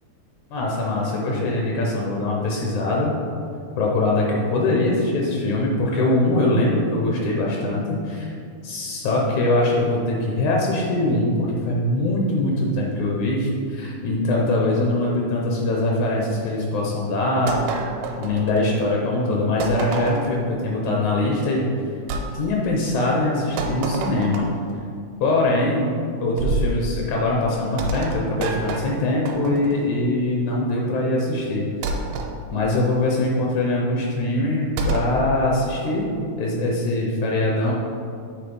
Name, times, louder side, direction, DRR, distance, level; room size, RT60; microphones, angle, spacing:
voice 1, 0.5-3.1 3.8-8.3 8.6-17.6 18.2-21.7 22.3-24.5 25.2-25.9 26.2-31.7 32.5-36.1 36.4-37.7, left 2 dB, 75° left, -2 dB, 2.0 m, -22 dB
sound 1, 17.5-18.9 19.6-20.4 22.1-22.3 23.6-24.7 26.4-26.8 27.8-29.9 31.8-32.3 34.8-35.2, right 3 dB, 85° right, 2.2 m, -28 dB
7.8 x 3.2 x 5.3 m, 2.3 s
omnidirectional pair, 3.8 m